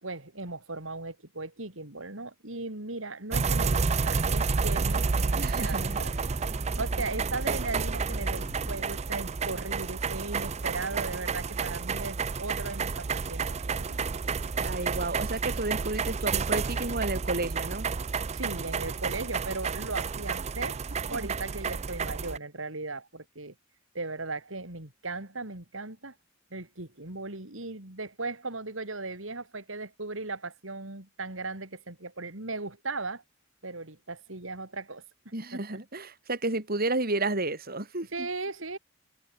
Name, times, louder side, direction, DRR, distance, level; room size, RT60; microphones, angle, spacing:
voice 1, 0.0-6.1 6.8-14.0 18.3-20.8 21.1-23.5 23.9-26.1 26.5-33.2 33.6-35.0 35.5-35.8 38.1-38.8, right 3 dB, 80° right, 4.2 m, -37 dB
sound 1, 3.3-22.4, right 5 dB, 35° right, 0.5 m, -30 dB
sound 2, 3.7-8.9, equal, 10° right, 7.3 m, -40 dB
voice 2, 5.4-6.0 14.6-17.9 21.1-21.3 35.3-38.3, right 2 dB, 50° right, 4.0 m, -32 dB
head